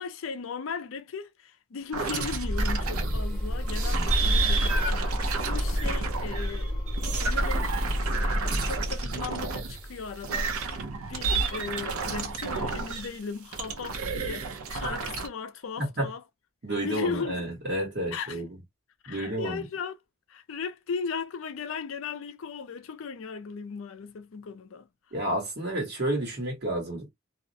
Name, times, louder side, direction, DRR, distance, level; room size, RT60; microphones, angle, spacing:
voice 1, 0.0-6.8 7.2-7.7 8.2-10.8 11.1-16.2 16.8-17.4 18.1-18.4 19.0-20.0 20.3-24.9, left 5 dB, 65° left, 0.4 m, -37 dB
sound 1, 1.9-3.3 3.7-9.8 10.2-13.2 13.5-15.3, right 3 dB, 85° right, 0.6 m, -31 dB
sound 2, 2.2-11.1, equal, 5° left, 0.7 m, -30 dB
voice 2, 15.8-16.1 16.6-18.5 19.1-19.6 25.1-27.1, right 1 dB, 50° right, 1.1 m, -30 dB
2.4 x 2.0 x 2.6 m
head